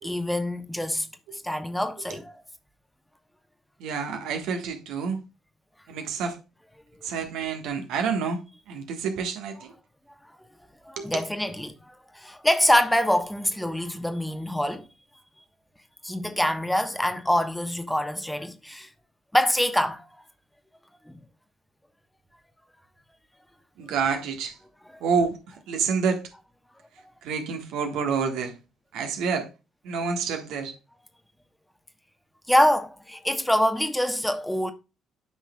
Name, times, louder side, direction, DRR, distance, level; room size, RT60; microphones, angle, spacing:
voice 1, 0.0-1.1 1.3-2.4 10.8-11.8 12.1-14.8 16.0-18.9 19.3-20.1 21.1-21.2 32.5-34.7, left 1 dB, 5° left, 1.2 m, -25 dB
voice 2, 3.8-5.2 5.9-6.4 7.0-8.4 8.7-9.7 11.0-11.2 23.8-24.5 25.0-25.4 25.7-26.2 27.2-28.5 28.9-29.5 29.8-30.7, right 5 dB, 65° right, 1.4 m, -28 dB
12.5 x 5.9 x 2.3 m
figure-of-eight pair, 45°, 0 cm